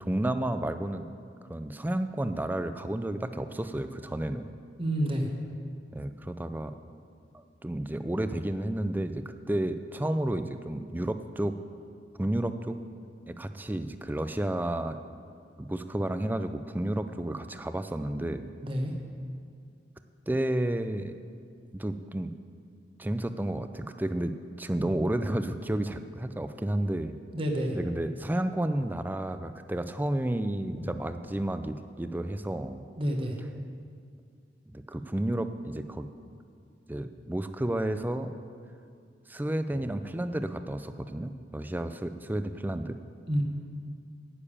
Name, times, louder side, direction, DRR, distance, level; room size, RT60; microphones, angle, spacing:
voice 1, 0.0-1.1 1.5-4.5 5.9-6.7 7.6-11.5 12.2-12.8 13.3-15.0 15.6-18.5 20.3-21.2 21.7-22.3 23.0-24.3 24.6-27.2 27.7-32.8 34.7-36.1 36.9-38.3 39.3-43.0, right 1 dB, 10° right, 9 dB, 0.4 m, -31 dB
voice 2, 4.8-5.3 18.6-18.9 27.3-27.8 33.0-33.3 43.3-43.4, equal, 30° right, 2 dB, 1.1 m, -28 dB
10.0 x 6.8 x 8.6 m, 2.3 s
head